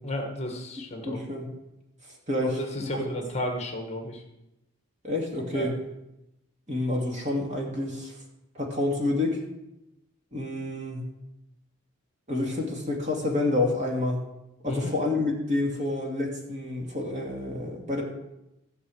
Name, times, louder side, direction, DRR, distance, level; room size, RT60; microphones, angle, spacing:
voice 1, 0.0-1.2 2.4-4.2 5.5-5.7 14.6-14.9, left 1 dB, 30° left, 2 dB, 1.5 m, -33 dB
voice 2, 1.0-1.5 2.3-3.0 5.0-5.8 6.7-8.1 8.5-9.4 10.3-11.1 12.3-14.2 14.6-18.0, left 2 dB, 35° right, -1 dB, 2.4 m, -28 dB
15.0 x 5.3 x 7.9 m, 0.92 s
head